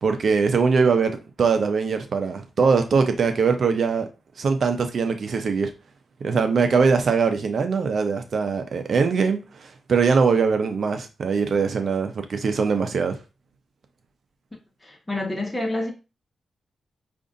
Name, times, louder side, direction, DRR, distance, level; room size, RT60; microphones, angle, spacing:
voice 1, 0.0-4.1 4.4-5.7 6.2-13.1, right 5 dB, 65° right, 0.6 m, -22 dB
voice 2, 14.8-15.9, left 2 dB, 20° left, 1.2 m, -28 dB
4.9 x 2.6 x 2.6 m
cardioid pair, 85°, 0 cm